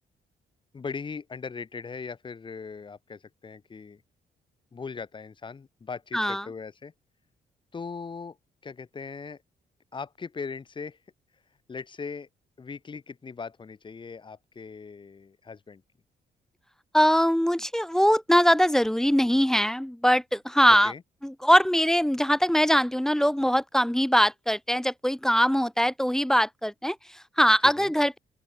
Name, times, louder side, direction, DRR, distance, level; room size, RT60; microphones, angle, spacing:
voice 1, 0.7-4.0 4.7-6.9 7.7-8.4 8.6-9.4 9.9-11.0 11.7-12.3 12.6-15.8 20.8-21.0 27.6-27.9, left 5 dB, 30° left, 1.5 m, -39 dB
voice 2, 6.1-6.5 16.9-20.9 21.2-28.2, equal, 5° left, 0.3 m, -22 dB
open air
cardioid pair, 130°, 17 cm